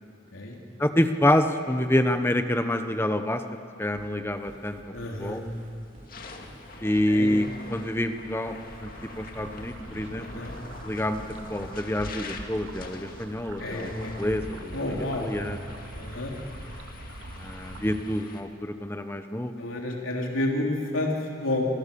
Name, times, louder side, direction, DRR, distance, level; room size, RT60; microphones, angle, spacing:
voice 1, 0.8-3.4 3.8-4.8 5.2-5.4 6.8-8.6 8.8-8.9 9.2-10.5 10.8-11.2 11.5-14.9 15.2-15.6 17.4-19.5, left 1 dB, 10° left, 8 dB, 1.1 m, -27 dB
sound 1, 3.9-11.7, right 1 dB, 40° right, 4.9 m, -50 dB
voice 2, 4.9-5.4 7.1-7.3 10.2-10.5 13.6-14.1 14.7-15.3 15.9-16.3 19.6-21.7, left 1 dB, 85° left, -1 dB, 3.6 m, -30 dB
sound 2, 5.2-5.5 5.9-18.4, left 3 dB, 45° left, 2.1 m, -46 dB
sound 3, 8.5-18.0, right 1 dB, 90° right, 2.2 m, -42 dB
28.5 x 24.0 x 7.1 m, 2.6 s
head